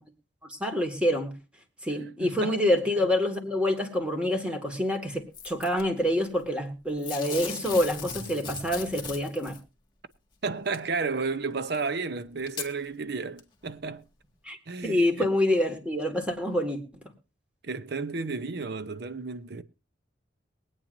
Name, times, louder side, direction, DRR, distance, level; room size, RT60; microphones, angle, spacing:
voice 1, 0.5-1.3 1.8-9.6 14.5-14.6 14.8-16.8, left 1 dB, 5° right, 2.0 m, -27 dB
voice 2, 2.2-2.6 10.4-14.0 14.7-15.3 17.6-19.6, right 4 dB, 60° right, 0.8 m, -32 dB
Packing tape duct tape / Tearing, 5.3-5.8 7.0-9.6 10.7-10.8 11.7-11.8 12.5-12.7 13.4-13.5, left 6 dB, 25° left, 1.9 m, -38 dB
22.5 x 9.0 x 2.7 m
head